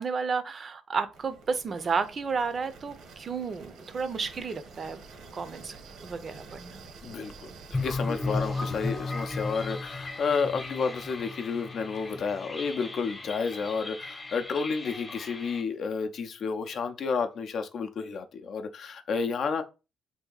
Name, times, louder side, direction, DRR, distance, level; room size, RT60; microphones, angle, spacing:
voice 1, 0.0-5.0 5.3-5.7 6.0-6.7, right 5 dB, 45° right, 0.5 m, -32 dB
sound 1, 1.1-13.0, right 4 dB, 80° right, 0.9 m, -50 dB
voice 2, 7.0-19.6, left 5 dB, 60° left, 0.5 m, -31 dB
sound 2, 7.7-15.6, left 3 dB, 25° left, 0.8 m, -35 dB
2.7 x 2.6 x 3.8 m
cardioid pair, 90°, 0 cm